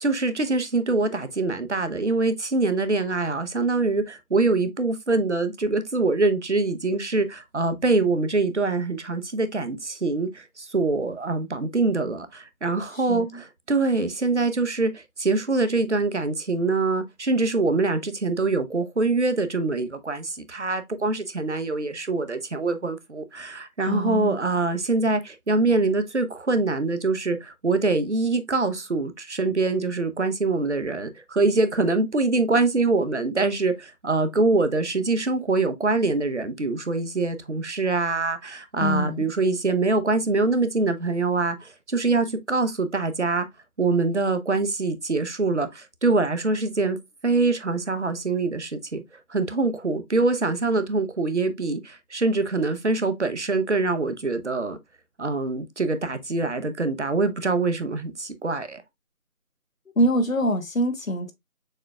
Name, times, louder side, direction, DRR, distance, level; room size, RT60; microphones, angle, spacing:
voice 1, 0.0-43.5 43.8-47.0 47.2-49.0 49.3-54.8 55.2-58.8, right 3 dB, 50° right, 0.7 m, -24 dB
voice 2, 13.1-13.4 23.8-24.4 38.8-39.3 60.0-61.3, equal, 65° left, 1.2 m, -24 dB
6.5 x 3.5 x 2.2 m
figure-of-eight pair, 175°, 44 cm